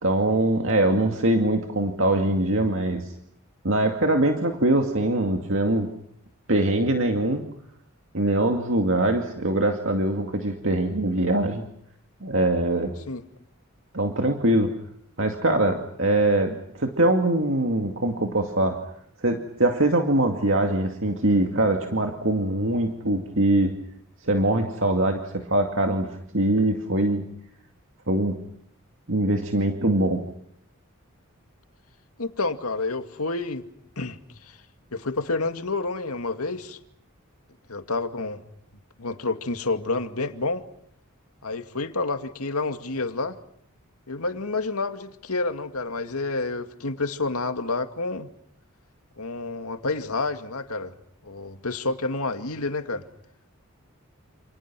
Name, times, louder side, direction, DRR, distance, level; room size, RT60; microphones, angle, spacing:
voice 1, 0.0-3.1 3.6-5.9 6.5-7.5 8.1-11.6 12.2-12.9 13.9-14.7 15.2-18.8 19.2-23.7 24.2-27.2 28.1-28.3 29.1-30.2, right 1 dB, 60° right, 3 dB, 2.4 m, -23 dB
voice 2, 32.2-33.7 34.0-34.6 34.9-36.8 37.7-38.4 39.0-40.6 41.4-43.4 44.1-48.3 49.2-50.9 51.2-53.1, left 3 dB, 85° left, 7 dB, 2.3 m, -29 dB
29.5 x 29.5 x 6.2 m, 0.73 s
head